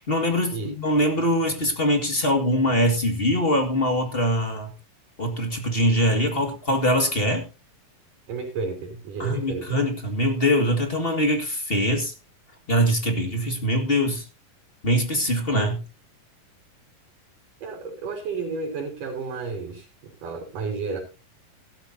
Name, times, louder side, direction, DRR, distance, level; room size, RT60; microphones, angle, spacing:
voice 1, 0.0-4.7 5.2-7.4 9.2-12.1 12.7-14.3 14.8-15.8, equal, 25° left, 5 dB, 1.4 m, -23 dB
voice 2, 8.3-9.8 17.6-21.0, right 4 dB, 70° right, 1 dB, 5.1 m, -32 dB
16.5 x 13.0 x 2.7 m, 0.29 s
omnidirectional pair, 3.9 m